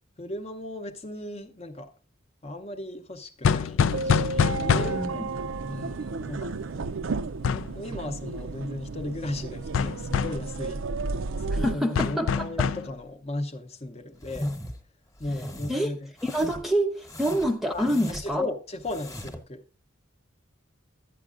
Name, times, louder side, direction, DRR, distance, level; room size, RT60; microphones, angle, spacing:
voice 1, 0.2-1.9 2.4-5.3 5.7-6.5 7.5-10.9 11.4-14.5 15.2-16.1 17.7-17.9 18.2-19.6, left 1 dB, 30° left, 0.7 m, -36 dB
sound 1, 3.4-5.2 7.4-7.7 9.7-10.5 12.0-12.9, left 6 dB, 75° left, 0.4 m, -25 dB
sound 2, 3.9-11.7, right 3 dB, 75° right, 0.5 m, -33 dB
voice 2, 4.7-5.2 11.5-12.3 12.6-12.7 15.7-15.9 16.2-18.4, equal, ahead, 0.5 m, -27 dB
sound 3, 14.2-14.8 15.2-15.7 16.2-16.7 17.0-18.4 18.8-19.5, left 1 dB, 15° left, 1.1 m, -37 dB
11.5 x 9.0 x 2.4 m
head